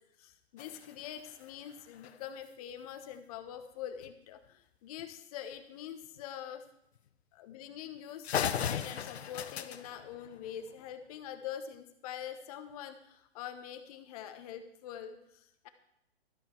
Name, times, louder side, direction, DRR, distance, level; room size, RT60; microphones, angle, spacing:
voice 1, 0.2-6.7 7.3-15.7, left 9 dB, 35° left, 9 dB, 1.1 m, -44 dB
sound 1, 0.6-2.5 4.0-4.1 4.5-4.6 5.0-5.1 6.0-6.2 7.0-7.1 7.5-7.6 8.0-8.1 8.2-10.9, left 8 dB, 80° left, 0.9 m, -38 dB
13.0 x 8.8 x 4.6 m, 0.79 s
hypercardioid pair, 140°, 32 cm